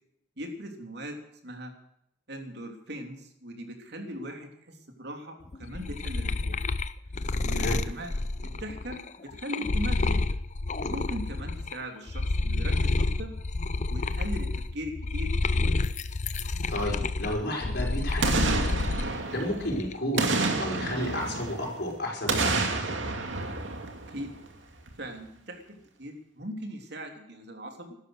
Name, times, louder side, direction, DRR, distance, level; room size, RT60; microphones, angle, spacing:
voice 1, 0.4-1.7 2.3-6.6 7.4-8.1 8.4-10.4 10.8-13.3 13.9-15.8 24.1-24.3 25.0-28.0, equal, 60° right, 3 dB, 3.3 m, -39 dB
sound 1, 5.5-11.8 12.1-19.1 19.5-20.2, left 3 dB, 40° left, 0.7 m, -29 dB
voice 2, 7.5-7.8 16.7-18.8 19.1-20.3 20.6-22.6, left 1 dB, 60° left, 0 dB, 5.4 m, -32 dB
Boom, 18.2-19.7 20.2-21.8 22.3-24.5 24.9-25.0, right 3 dB, 80° right, 2.5 m, -29 dB
16.5 x 13.0 x 6.6 m, 0.75 s
head